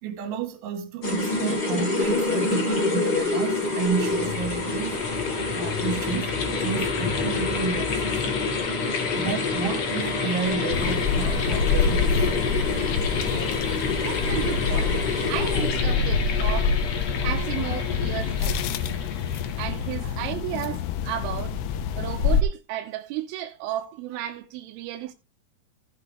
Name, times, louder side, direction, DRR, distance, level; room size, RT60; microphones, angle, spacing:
voice 1, 0.0-5.0 5.5-6.3 6.6-8.0 9.2-12.3 20.0-20.1, right 6 dB, 70° right, 4.3 m, -31 dB
sound 1, 1.0-16.1, left 2 dB, 25° left, 2.8 m, -28 dB
sound 2, 3.4-20.1, left 6 dB, 55° left, 1.9 m, -30 dB
sound 3, 10.7-22.4, left 5 dB, 80° left, 2.3 m, -26 dB
voice 2, 14.0-15.0 15.3-16.8 17.2-18.6 19.6-21.6 22.0-25.1, right 12 dB, 90° right, 3.6 m, -33 dB
15.0 x 8.1 x 3.3 m
omnidirectional pair, 5.8 m